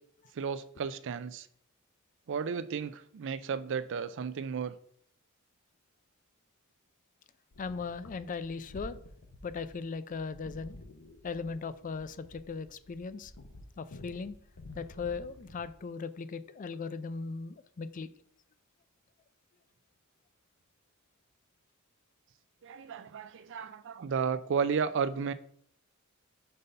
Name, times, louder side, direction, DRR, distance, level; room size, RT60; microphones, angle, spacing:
voice 1, 0.3-1.5 2.3-4.7 22.6-25.3, right 6 dB, 60° right, 14 dB, 0.4 m, -33 dB
sound 1, 7.5-15.8, left 1 dB, 80° left, 0.9 m, -51 dB
voice 2, 7.6-9.0 9.4-10.8 11.2-13.3 13.8-14.4 14.8-18.1, left 4 dB, 40° left, 14 dB, 0.4 m, -38 dB
5.4 x 3.9 x 5.4 m, 0.63 s
head